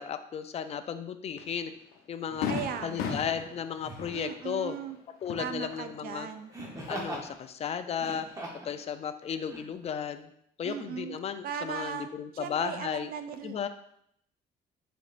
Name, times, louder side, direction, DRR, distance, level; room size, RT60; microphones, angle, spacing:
voice 1, 0.0-1.7 2.1-2.5 2.8-4.8 5.2-6.3 6.9-8.3 8.6-10.3 10.6-13.1 13.4-13.7, left 7 dB, 40° left, 9 dB, 0.4 m, -34 dB
Fireworks, 1.4-1.5 1.9-2.0 2.4-6.2 6.5-7.4, left 6 dB, 90° left, 0.7 m, -37 dB
Laughter, 2.3-2.5 3.8-4.2 6.5-7.3 7.9-8.7 9.5-9.6, right 1 dB, 20° right, 0.9 m, -40 dB
voice 2, 2.5-3.2 4.1-5.0 5.4-6.5 10.6-11.2 11.4-13.7, right 7 dB, 60° right, 9 dB, 0.5 m, -38 dB
5.1 x 4.0 x 2.5 m, 0.71 s
cardioid pair, 110°, 17 cm